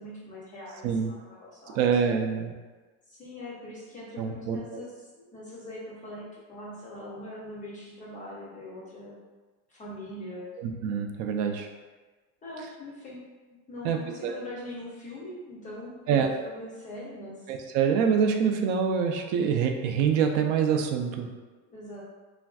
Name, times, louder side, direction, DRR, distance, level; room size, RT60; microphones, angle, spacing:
voice 1, 0.0-1.9 3.1-9.2 9.7-10.6 12.4-13.2 13.7-17.5 21.7-22.0, left 1 dB, 20° left, -5 dB, 0.4 m, -42 dB
voice 2, 1.8-2.5 4.2-4.8 10.8-11.7 13.8-14.4 16.1-16.3 17.5-21.3, right 7 dB, 60° right, 5 dB, 0.5 m, -25 dB
3.4 x 2.5 x 2.3 m, 1.3 s
supercardioid pair, 145°, 40 cm